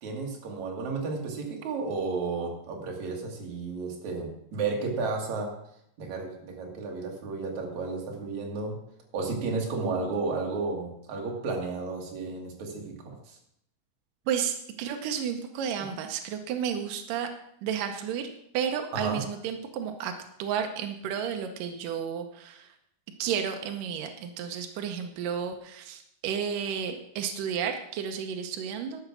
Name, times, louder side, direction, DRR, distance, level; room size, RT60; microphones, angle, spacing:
voice 1, 0.0-5.5 6.0-8.8 9.1-13.4 18.9-19.2, right 4 dB, 50° right, 0 dB, 2.8 m, -32 dB
voice 2, 14.3-17.3 17.6-18.3 18.5-20.1 20.4-22.7 23.2-29.0, right 8 dB, 90° right, 6 dB, 1.9 m, -32 dB
11.5 x 7.2 x 6.2 m, 0.74 s
omnidirectional pair, 5.1 m